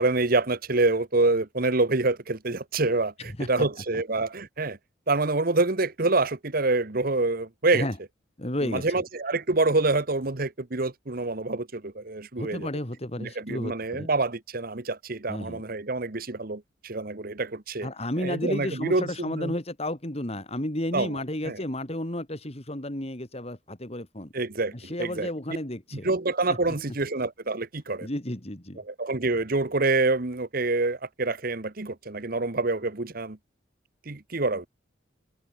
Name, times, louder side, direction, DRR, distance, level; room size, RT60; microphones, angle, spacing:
voice 1, 0.0-3.1 3.5-4.8 5.1-7.9 8.6-12.7 13.2-17.9 18.2-19.5 20.9-21.1 21.4-21.6 24.3-25.3 26.0-28.1 28.8-33.4 34.1-34.7, right 3 dB, 50° right, 1.3 m, -26 dB
voice 2, 3.2-3.7 3.9-4.0 7.7-8.0 8.4-8.9 12.4-14.1 15.3-15.6 17.8-24.3 24.7-26.1 26.5-26.8 28.0-28.8, left 1 dB, 35° left, 3.0 m, -32 dB
head